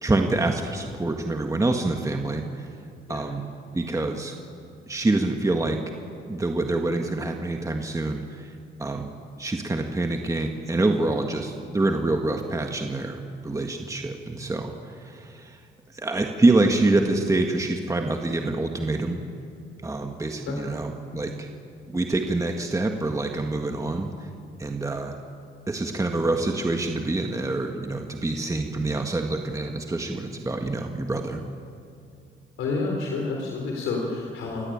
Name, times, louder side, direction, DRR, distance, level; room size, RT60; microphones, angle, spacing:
voice 1, 0.0-2.7 3.1-3.5 3.7-4.4 4.9-5.8 6.3-8.5 8.8-15.6 15.9-19.2 19.8-21.5 21.9-24.3 24.6-25.2 25.7-31.4, right 2 dB, 15° right, 3 dB, 1.7 m, -26 dB
voice 2, 32.6-34.6, left 3 dB, 80° left, 0 dB, 3.8 m, -29 dB
29.0 x 15.5 x 8.8 m, 2.4 s
cardioid pair, 90°, 20 cm